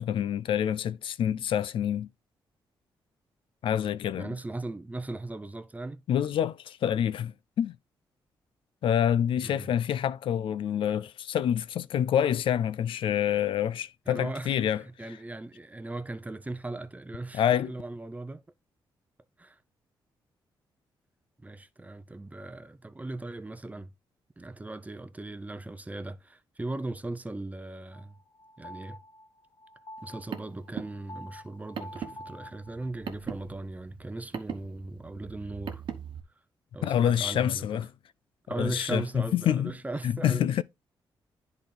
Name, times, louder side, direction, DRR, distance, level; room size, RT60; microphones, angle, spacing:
voice 1, 0.0-2.1 3.6-4.3 6.1-7.8 8.8-14.8 17.3-17.7 36.8-37.9 38.6-39.7 40.0-40.6, left 9 dB, 70° left, 0.4 m, -27 dB
voice 2, 4.1-6.0 9.4-9.7 14.1-14.5 14.8-18.4 19.4-19.6 21.4-23.9 24.4-28.2 28.6-29.0 30.0-35.8 36.7-37.7 38.5-40.6, right 2 dB, 15° right, 0.7 m, -38 dB
sound 1, 27.9-33.1, left 1 dB, 40° left, 0.9 m, -48 dB
Car, 30.0-36.2, right 7 dB, 60° right, 1.1 m, -41 dB
10.5 x 4.0 x 3.3 m
cardioid pair, 65°, 9 cm